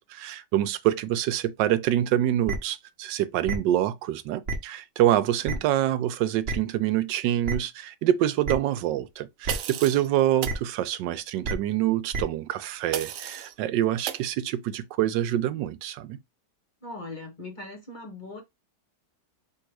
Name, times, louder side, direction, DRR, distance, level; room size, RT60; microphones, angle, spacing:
voice 1, 0.0-16.2, right 12 dB, 85° right, 1.3 m, -26 dB
sound 1, 2.5-2.6 3.5-3.6 4.5-4.6 5.5-5.6 6.5-6.6 7.5-7.6 8.5-8.6 9.5-9.6 10.4-10.5 11.4-11.5 12.1-12.2, right 3 dB, 45° right, 1.0 m, -28 dB
sound 2, 9.5-10.1 10.4-10.6 12.9-13.5 14.1-14.3, right 10 dB, 70° right, 0.8 m, -33 dB
voice 2, 16.8-18.4, left 2 dB, 35° left, 0.9 m, -39 dB
3.7 x 2.9 x 4.6 m
omnidirectional pair, 1.9 m